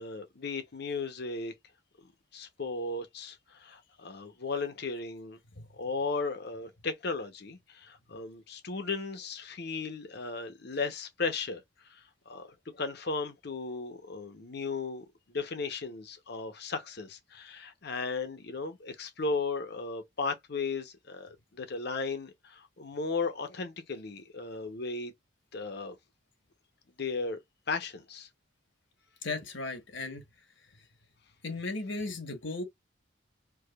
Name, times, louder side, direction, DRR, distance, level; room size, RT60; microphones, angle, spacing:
voice 1, 0.0-1.5 2.3-5.4 5.7-11.6 11.9-25.1 25.5-26.0 27.0-27.4 27.7-28.3, left 4 dB, 55° left, 0.8 m, -36 dB
voice 2, 29.2-30.2 30.7-30.8 31.4-32.6, left 3 dB, 70° left, 1.2 m, -36 dB
4.7 x 2.3 x 2.3 m
head